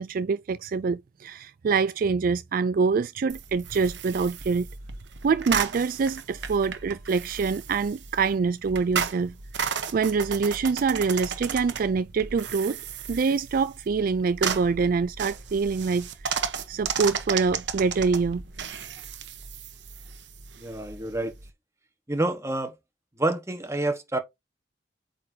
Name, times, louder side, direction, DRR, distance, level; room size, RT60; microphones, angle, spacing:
voice 1, 0.0-4.7 5.2-9.3 9.9-12.8 13.1-16.4 16.7-18.4, right 5 dB, 55° right, 0.4 m, -25 dB
sound 1, 3.3-21.5, right 6 dB, 85° right, 1.0 m, -34 dB
voice 2, 20.6-21.3 22.1-22.7 23.2-24.2, right 2 dB, 15° right, 1.4 m, -28 dB
8.5 x 4.0 x 2.8 m
head